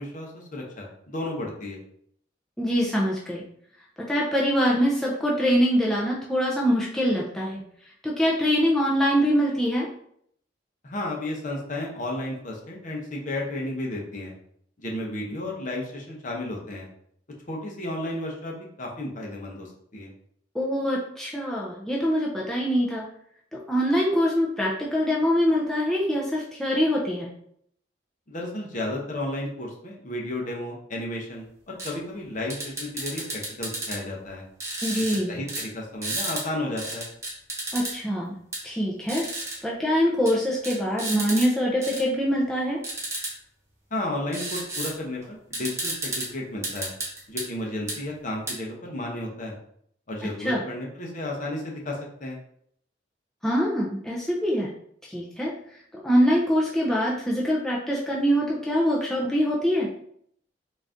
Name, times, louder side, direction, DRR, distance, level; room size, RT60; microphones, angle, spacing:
voice 1, 0.0-1.8 10.8-14.3 14.8-16.9 17.5-20.1 28.3-34.4 35.0-37.1 43.9-46.9 47.3-49.6 50.1-52.4, left 1 dB, 45° left, -1 dB, 0.8 m, -33 dB
voice 2, 2.6-3.4 4.1-7.6 8.0-9.9 20.5-23.0 23.5-27.3 34.8-35.4 37.7-38.3 38.6-39.2 39.6-42.8 50.4-50.6 53.4-54.7 55.1-55.5 56.0-59.9, equal, ahead, -5 dB, 0.5 m, -24 dB
sound 1, 31.8-31.9 32.5-34.0 34.6-35.2 35.5-35.7 36.0-36.4 36.8-37.9 38.5-38.6 39.1-39.6 40.3-40.4 40.6-41.5 41.8-42.0 42.8-43.3 44.3-44.9 45.2-45.3 45.5-46.3 46.6-47.5 47.9-48.0 48.5-48.6, right 2 dB, 15° right, 0.9 m, -32 dB
4.0 x 2.5 x 3.4 m, 0.67 s
head